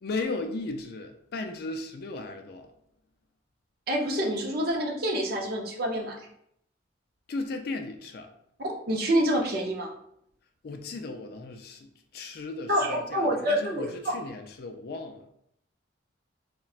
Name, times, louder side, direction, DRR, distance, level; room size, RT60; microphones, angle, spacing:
voice 1, 0.0-2.7 7.3-8.3 10.6-15.3, left 3 dB, 50° left, 0.3 m, -36 dB
voice 2, 3.9-6.3 8.6-9.9 12.7-14.1, equal, 50° right, 0.6 m, -27 dB
4.0 x 2.2 x 2.4 m
head